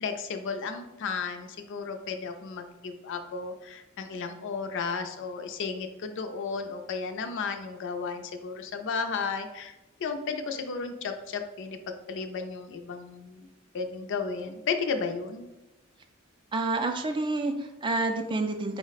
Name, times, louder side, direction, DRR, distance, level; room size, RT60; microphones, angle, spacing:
voice 1, 0.0-9.7 10.0-11.8 12.1-13.5 13.7-15.5, left 5 dB, 60° left, 7 dB, 0.4 m, -33 dB
voice 2, 16.5-18.8, right 2 dB, 25° right, 5 dB, 0.3 m, -28 dB
4.6 x 2.1 x 4.0 m, 1.0 s
head